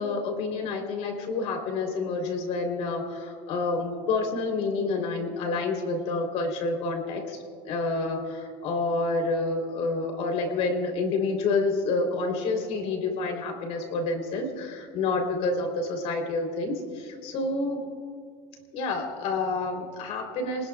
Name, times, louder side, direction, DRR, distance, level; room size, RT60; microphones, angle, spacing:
voice 1, 0.0-7.4 7.6-17.8 18.7-20.7, left 3 dB, 60° left, 3 dB, 3.5 m, -28 dB
28.0 x 20.0 x 2.4 m, 2.1 s
cardioid pair, 145°, 12 cm